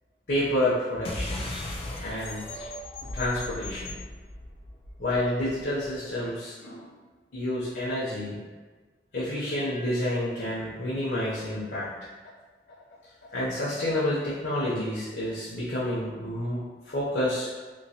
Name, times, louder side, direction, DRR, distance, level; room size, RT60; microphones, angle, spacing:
voice 1, 0.3-1.5 2.0-2.4 3.1-4.0 5.0-6.9 7.3-8.4 9.1-11.9 13.3-17.5, left 1 dB, 70° left, -8 dB, 0.7 m, -29 dB
sound 1, 1.0-6.0, left 1 dB, 35° left, 0.4 m, -37 dB
3.0 x 2.9 x 2.8 m, 1.4 s
head